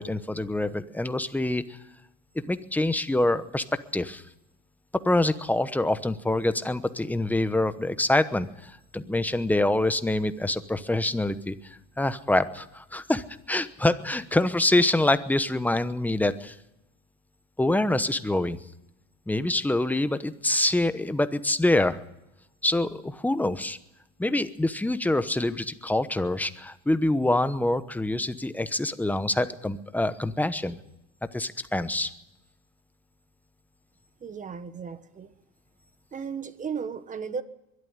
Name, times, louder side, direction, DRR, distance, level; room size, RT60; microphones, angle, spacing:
voice 1, 0.0-1.6 2.5-3.6 3.9-4.2 5.0-11.5 12.0-16.5 17.6-18.6 19.3-22.0 22.6-23.8 24.2-30.8 31.3-32.1, left 1 dB, 5° left, 11 dB, 1.0 m, -25 dB
voice 2, 34.2-35.3 36.1-37.4, right 6 dB, 20° right, 12 dB, 1.4 m, -35 dB
22.5 x 13.0 x 9.6 m, 0.91 s
supercardioid pair, 135°, 35 cm